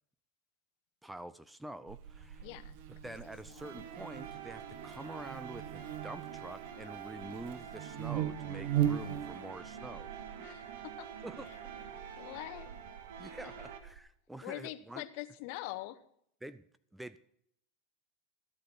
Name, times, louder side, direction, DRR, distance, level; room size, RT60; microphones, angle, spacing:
voice 1, 1.0-2.5 3.0-10.1 11.2-11.7 13.2-15.0 16.4-16.6 16.9-17.2, right 1 dB, 5° right, 16 dB, 0.4 m, -47 dB
Buzz, 1.9-14.0, right 11 dB, 65° right, 1.1 m, -40 dB
voice 2, 2.4-2.8 3.0-3.1 3.4-3.8 8.9-9.3 10.4-11.1 11.5-11.6 12.2-12.7 13.4-13.5 14.4-16.0, left 16 dB, 60° left, 11 dB, 0.9 m, -44 dB
sound 1, 3.6-13.8, right 8 dB, 80° right, 1.8 m, -47 dB
13.5 x 8.4 x 5.9 m, 0.68 s
supercardioid pair, 135°, 0 cm